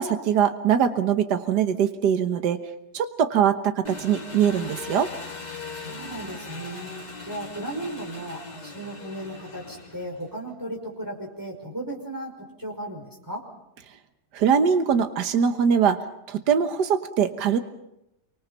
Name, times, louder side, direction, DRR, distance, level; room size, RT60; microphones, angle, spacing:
voice 1, 0.0-2.6 2.9-5.1 14.3-16.0 16.3-17.6, right 7 dB, 75° right, 8 dB, 1.8 m, -22 dB
Engine, 3.8-10.3, left 3 dB, 25° left, 3.6 m, -39 dB
voice 2, 5.7-6.9 7.2-13.5, right 1 dB, 10° right, -1 dB, 5.4 m, -36 dB
28.0 x 25.0 x 5.7 m, 0.85 s
omnidirectional pair, 1.8 m